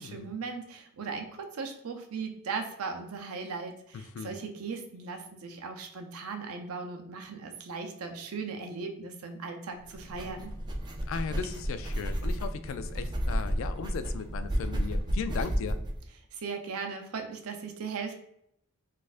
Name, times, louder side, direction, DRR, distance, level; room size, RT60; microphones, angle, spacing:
voice 1, 0.0-10.5 16.3-18.1, right 4 dB, 85° right, 4 dB, 0.5 m, -38 dB
sound 1, 9.8-16.0, equal, 20° right, 0.4 m, -32 dB
voice 2, 11.1-15.8, left 5 dB, 65° left, 10 dB, 0.3 m, -37 dB
4.1 x 2.5 x 2.4 m, 0.73 s
head